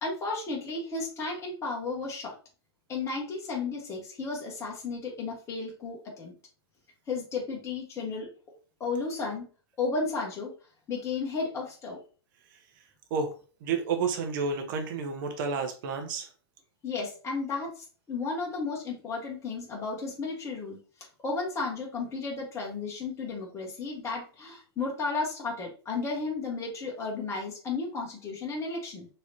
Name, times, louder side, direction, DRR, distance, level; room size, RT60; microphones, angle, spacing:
voice 1, 0.0-2.4 2.9-6.3 7.1-8.3 8.8-9.5 9.8-10.5 10.9-12.0 16.8-20.8 21.2-29.1, left 4 dB, 20° left, -2 dB, 1.4 m, -33 dB
voice 2, 13.6-16.3, right 5 dB, 50° right, 6 dB, 1.0 m, -30 dB
4.7 x 3.1 x 2.8 m, 0.37 s
figure-of-eight pair, 105°, 14 cm